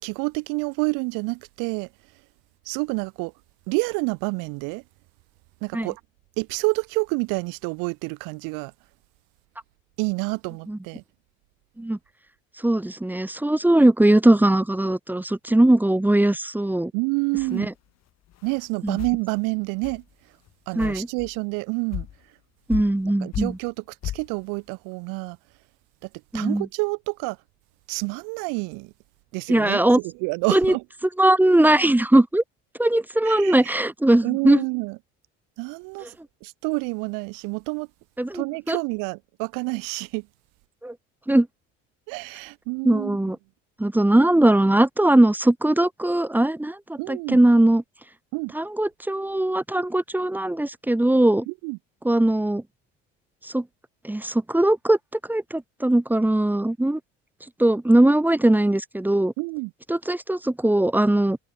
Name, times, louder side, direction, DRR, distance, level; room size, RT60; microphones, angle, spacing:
voice 1, 0.0-1.9 2.6-3.3 3.7-4.8 5.6-6.0 6.4-8.7 10.0-11.0 16.9-17.7 18.4-20.0 20.7-22.1 23.0-25.4 26.3-27.4 27.9-28.9 29.3-30.8 33.3-33.8 34.2-35.0 35.6-36.1 36.4-37.9 38.3-40.3 42.1-43.2 47.0-47.4 48.3-48.5 51.5-51.8 59.4-59.7, right 32 dB, 75° right, 2.8 m, -28 dB
voice 2, 12.6-16.9 17.5-17.7 18.8-19.0 20.8-21.1 22.7-23.6 26.3-26.7 29.5-30.0 30.5-30.7 31.2-32.4 32.8-34.6 38.2-38.8 40.8-40.9 41.3-41.5 42.8-43.4 43.8-47.8 48.5-51.5 52.0-52.6 53.5-53.6 54.0-55.0 55.3-57.0 57.6-59.3 59.9-61.4, right 1 dB, 5° right, 0.8 m, -20 dB
sound 1, 17.4-17.6 18.3-18.7 19.0-19.2 19.8-20.0 20.5-20.6 20.8-21.4 21.9-22.2 22.7-23.1 23.3-23.7 24.0-24.3, left 13 dB, 55° left, 1.5 m, -34 dB
hypercardioid pair, 70°, 33 cm